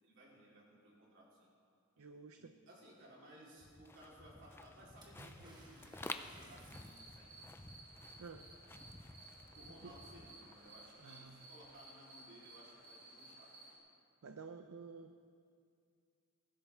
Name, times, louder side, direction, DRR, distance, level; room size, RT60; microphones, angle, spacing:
voice 1, 0.0-1.5 2.4-5.9 6.2-7.5 9.5-13.6, right 1 dB, 55° right, -5 dB, 3.8 m, -60 dB
voice 2, 2.0-2.6 8.2-8.4 9.8-9.9 11.0-11.5 14.2-15.2, right 4 dB, 75° right, 7 dB, 0.6 m, -51 dB
sound 1, 3.6-10.9, left 2 dB, 10° left, 0.3 m, -52 dB
Water / Splash splatter, 5.0-7.4 10.7-10.8 11.0-11.8 12.9-13.0, right 1 dB, 20° right, 1.5 m, -58 dB
sound 2, 6.7-13.8, right 2 dB, 40° right, 2.7 m, -58 dB
20.5 x 12.5 x 3.5 m, 2.3 s
head